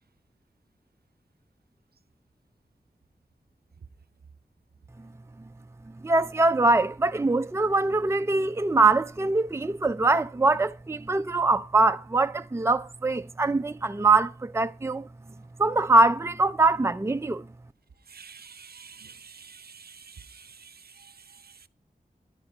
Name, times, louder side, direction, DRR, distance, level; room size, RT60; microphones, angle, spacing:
voice 1, 6.0-15.1 15.6-17.4, right 3 dB, 15° right, 0.5 m, -23 dB
voice 2, 18.1-21.7, right 6 dB, 85° right, 0.6 m, -49 dB
10.5 x 9.8 x 4.8 m
wide cardioid pair, 60°, 16 cm